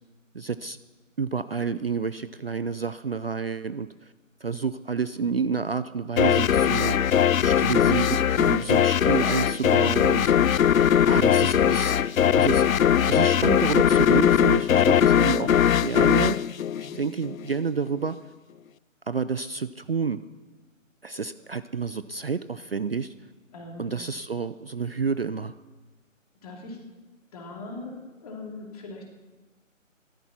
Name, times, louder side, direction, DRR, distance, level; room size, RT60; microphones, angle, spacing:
voice 1, 0.3-0.8 1.2-4.1 4.4-7.0 7.4-10.3 11.0-12.0 12.4-12.6 13.1-15.5 15.8-16.4 17.0-18.2 19.1-20.2 21.0-23.1 23.8-25.5, right 5 dB, 50° right, 13 dB, 0.4 m, -29 dB
sound 1, 6.2-17.4, left 9 dB, 85° left, 0.5 m, -20 dB
voice 2, 16.7-17.0 21.4-21.5 23.5-24.1 26.4-26.9 27.3-29.0, left 2 dB, 30° left, 0 dB, 2.8 m, -41 dB
14.5 x 12.5 x 5.8 m, 1.2 s
figure-of-eight pair, 155°, 40 cm